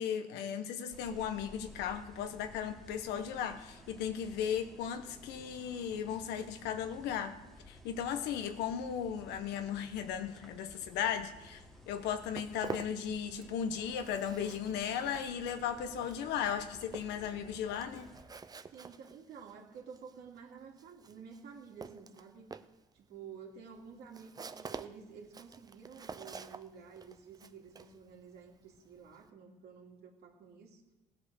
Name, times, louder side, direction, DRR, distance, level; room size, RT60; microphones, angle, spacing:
voice 1, 0.0-7.4 7.7-18.1, left 8 dB, 90° left, 9 dB, 1.2 m, -36 dB
sound 1, 0.9-18.2, equal, ahead, 1.9 m, -55 dB
Walk footsteps, 11.9-13.6 13.9-29.3, right 5 dB, 20° right, 0.6 m, -49 dB
voice 2, 18.7-22.5 22.9-30.8, right 6 dB, 70° right, 0 dB, 2.8 m, -51 dB
16.5 x 8.2 x 6.4 m, 1.1 s
cardioid pair, 110°, 17 cm